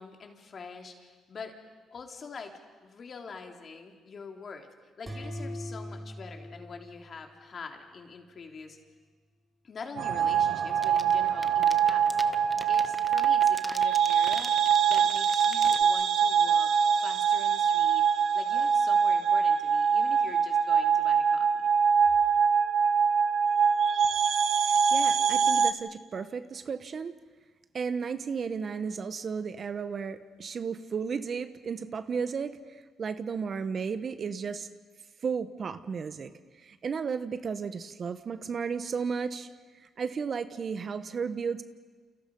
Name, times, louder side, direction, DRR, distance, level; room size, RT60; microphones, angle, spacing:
voice 1, 0.0-1.5 1.9-2.5 2.8-4.7 5.0-8.8 9.6-14.5 14.9-16.7 17.0-21.5, left 5 dB, 45° left, 3 dB, 3.4 m, -45 dB
sound 1, 5.1-7.8, equal, 25° right, 5.2 m, -41 dB
sound 2, 10.0-25.7, right 7 dB, 75° right, 1.4 m, -24 dB
sound 3, 10.7-15.8, left 1 dB, 5° left, 1.3 m, -40 dB
voice 2, 24.7-27.1 27.7-32.5 33.0-34.7 35.2-36.3 36.6-39.5 40.0-41.6, right 6 dB, 45° right, 11 dB, 1.2 m, -34 dB
29.0 x 28.5 x 5.5 m, 1.4 s
cardioid pair, 90°, 0 cm